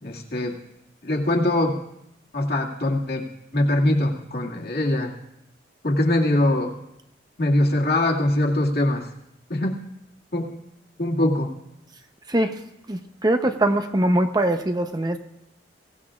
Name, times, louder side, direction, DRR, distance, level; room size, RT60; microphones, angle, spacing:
voice 1, 0.0-0.6 1.0-1.8 2.3-3.3 3.5-5.1 5.8-6.7 7.4-9.1 9.5-9.8 10.3-10.5 11.0-11.5, left 1 dB, 60° left, -1 dB, 2.2 m, -22 dB
voice 2, 12.3-12.6 12.9-15.2, right 1 dB, 20° right, 7 dB, 0.8 m, -22 dB
22.5 x 17.5 x 2.5 m, 0.83 s
head